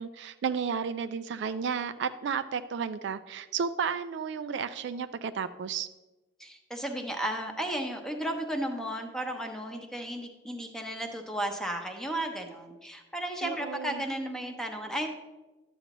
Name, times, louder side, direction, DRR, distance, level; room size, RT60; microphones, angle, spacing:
voice 1, 0.0-5.9 13.4-14.0, right 6 dB, 60° right, 11 dB, 0.3 m, -33 dB
voice 2, 6.4-15.1, right 1 dB, 5° left, 3 dB, 0.8 m, -34 dB
12.0 x 7.9 x 3.0 m, 1.1 s
head